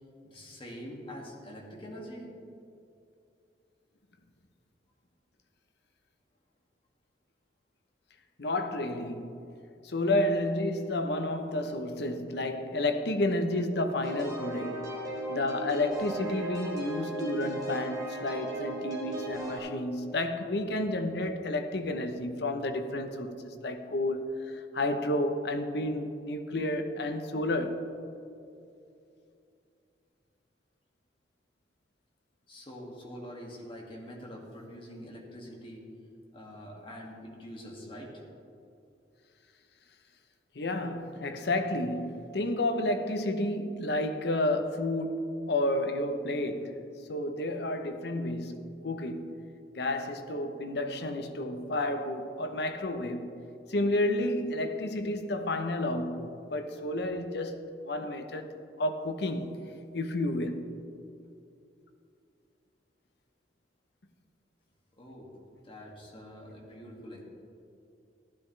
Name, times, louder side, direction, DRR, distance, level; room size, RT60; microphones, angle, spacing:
voice 1, 0.2-2.3 32.5-35.8 36.3-38.1 65.0-67.2, equal, 30° left, 2.1 m, -45 dB
voice 2, 8.4-9.5 9.8-14.8 15.3-27.8 40.5-46.8 47.1-49.3 49.7-53.3 53.7-58.5 58.8-59.6 59.9-60.6, left 1 dB, 65° left, 0.9 m, -31 dB
sound 1, 14.0-19.6, right 2 dB, 20° right, 3.0 m, -36 dB
15.0 x 12.0 x 3.3 m
head